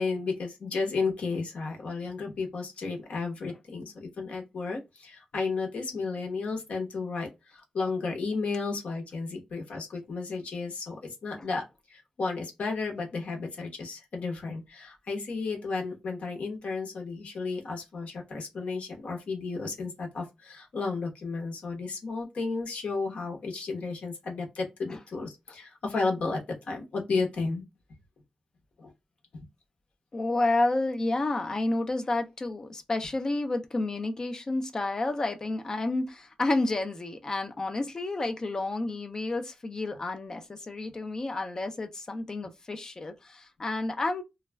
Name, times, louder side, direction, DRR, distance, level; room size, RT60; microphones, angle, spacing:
voice 1, 0.0-11.6 11.9-27.6 28.8-28.9, left 4 dB, 70° left, 0.8 m, -33 dB
voice 2, 30.1-44.2, left 2 dB, 30° left, 0.4 m, -30 dB
2.3 x 2.1 x 3.3 m
wide cardioid pair, 170°, 2 cm